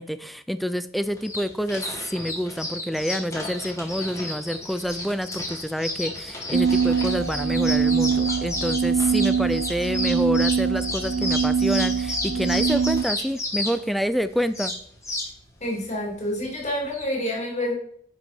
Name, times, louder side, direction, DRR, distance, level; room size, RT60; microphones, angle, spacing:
voice 1, 0.0-14.7, equal, ahead, 12 dB, 0.4 m, -28 dB
sound 1, 1.0-17.1, left 2 dB, 15° left, 2.0 m, -32 dB
sound 2, 6.5-13.0, right 6 dB, 75° right, 0.7 m, -23 dB
voice 2, 15.6-17.7, left 1 dB, 35° left, -3 dB, 3.0 m, -28 dB
10.0 x 5.9 x 4.4 m, 0.65 s
head